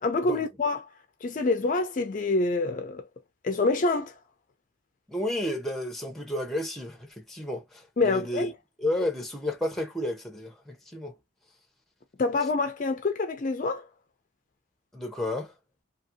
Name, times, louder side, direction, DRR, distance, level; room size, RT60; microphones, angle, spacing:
voice 1, 0.0-0.9 1.2-3.0 3.4-4.1 8.0-8.5 12.2-13.9, left 3 dB, 40° left, 0.4 m, -26 dB
voice 2, 5.1-8.5 8.8-11.1 14.9-15.5, left 1 dB, ahead, 0.7 m, -32 dB
2.8 x 2.6 x 2.7 m
head